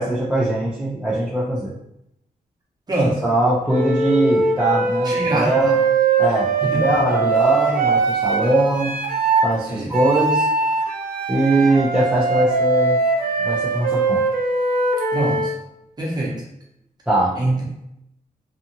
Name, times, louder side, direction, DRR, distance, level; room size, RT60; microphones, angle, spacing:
voice 1, 0.0-1.7 3.2-5.8 6.2-9.0 9.4-10.5 11.3-13.0 13.4-14.2 17.1-17.4, right 1 dB, 5° right, -8 dB, 0.4 m, -21 dB
voice 2, 2.9-3.2 5.0-5.8 6.6-6.8 9.7-9.9 15.1-15.5 16.0-16.4 17.4-17.9, right 1 dB, 30° right, -4 dB, 0.8 m, -24 dB
Wind instrument woodwind instrument, 3.7-9.5 9.9-15.6, right 4 dB, 85° right, 0.5 m, -21 dB
2.6 x 2.4 x 2.7 m, 0.79 s
wide cardioid pair, 170°, 15 cm